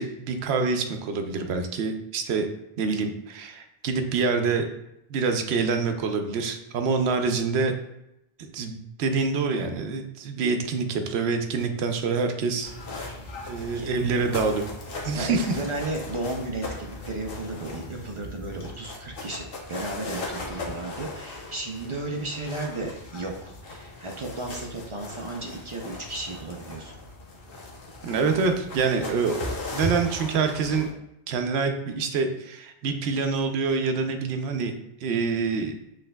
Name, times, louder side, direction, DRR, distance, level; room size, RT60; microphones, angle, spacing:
voice 1, 0.0-2.5 2.8-4.6 5.1-7.7 8.4-12.7 13.5-14.7 15.0-15.6 28.0-30.9 31.3-34.7 35.0-35.8, right 4 dB, 85° right, 6 dB, 0.8 m, -26 dB
sound 1, 12.6-30.9, left 2 dB, 65° left, 1.0 m, -38 dB
voice 2, 15.1-26.9, right 2 dB, 40° right, 1 dB, 0.5 m, -34 dB
6.4 x 3.2 x 2.2 m, 0.85 s
omnidirectional pair, 1.1 m